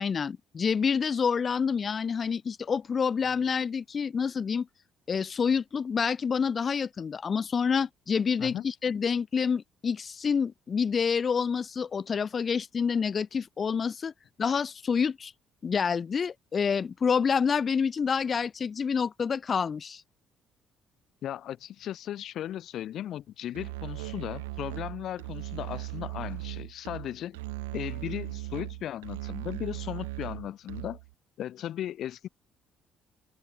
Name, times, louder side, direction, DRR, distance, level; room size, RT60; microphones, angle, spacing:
voice 1, 0.0-4.7 5.1-14.1 14.4-15.3 15.6-20.0, left 6 dB, 40° left, 2.0 m, -28 dB
voice 2, 21.2-27.4 27.7-31.0 31.4-32.3, left 11 dB, 60° left, 2.5 m, -36 dB
Musical instrument, 23.5-31.1, right 22 dB, 80° right, 2.5 m, -38 dB
hypercardioid pair, 50°, 0 cm